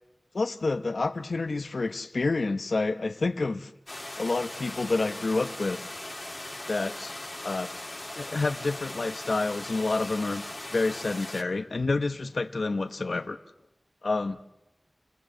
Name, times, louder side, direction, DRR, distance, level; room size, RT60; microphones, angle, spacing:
voice 1, 0.3-3.7 4.2-5.9 6.7-7.7 8.1-10.4 10.7-13.4 14.0-14.4, left 3 dB, 90° left, 0.9 m, -28 dB
sound 1, 3.9-11.4, left 1 dB, 35° left, 2.1 m, -39 dB
30.0 x 19.0 x 7.8 m
wide cardioid pair, 50°, 0 cm